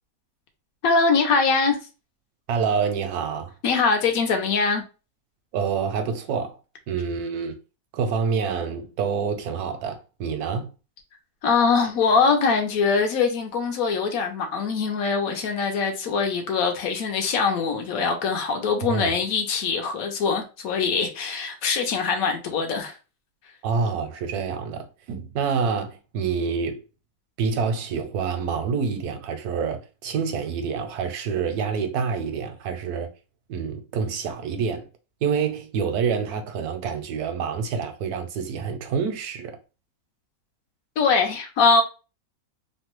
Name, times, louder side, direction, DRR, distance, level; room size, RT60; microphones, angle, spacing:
voice 1, 0.8-1.8 3.6-4.8 11.4-22.9 41.0-41.8, left 4 dB, 70° left, 1.1 m, -22 dB
voice 2, 2.5-3.5 5.5-6.6 6.9-7.6 7.9-10.7 18.8-19.1 23.6-26.8 27.4-33.1 33.5-34.9 35.2-39.6, right 6 dB, 85° right, 1.2 m, -27 dB
3.1 x 2.1 x 3.0 m
omnidirectional pair, 1.6 m